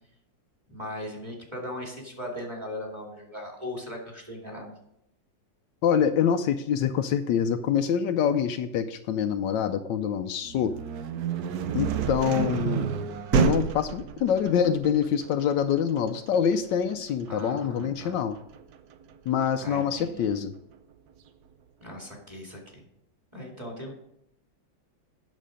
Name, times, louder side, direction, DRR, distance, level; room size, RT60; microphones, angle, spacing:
voice 1, 0.7-4.7 17.3-18.2 19.6-20.3 21.8-22.8 23.3-23.9, left 1 dB, 15° right, -1 dB, 2.4 m, -38 dB
voice 2, 5.8-10.7 11.7-12.9 13.3-18.4 19.3-20.5, left 8 dB, 75° left, 9 dB, 1.2 m, -25 dB
sound 1, 10.4-20.2, right 8 dB, 65° right, 1.0 m, -31 dB
9.3 x 6.5 x 5.1 m, 0.79 s
omnidirectional pair, 2.0 m